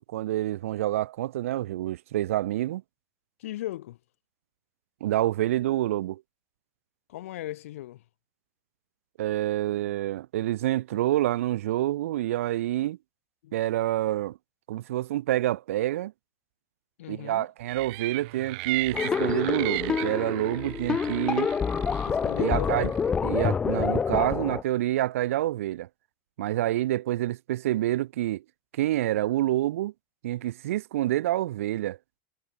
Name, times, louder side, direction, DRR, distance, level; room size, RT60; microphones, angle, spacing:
voice 1, 0.1-2.8 5.0-6.2 9.2-13.0 13.5-14.4 14.7-16.1 17.1-21.5 22.4-22.9 23.2-25.9 26.4-28.4 28.7-29.9 30.2-32.0, right 14 dB, 85° right, 2.6 m, -27 dB
voice 2, 3.4-4.0 7.1-8.0 13.4-13.6 17.0-17.5 22.1-22.9, left 14 dB, 85° left, 5.0 m, -36 dB
sound 1, 17.7-23.1, right 28 dB, 50° right, 1.0 m, -36 dB
sound 2, 18.9-24.6, left 6 dB, 10° left, 0.4 m, -27 dB
supercardioid pair, 170°, 7 cm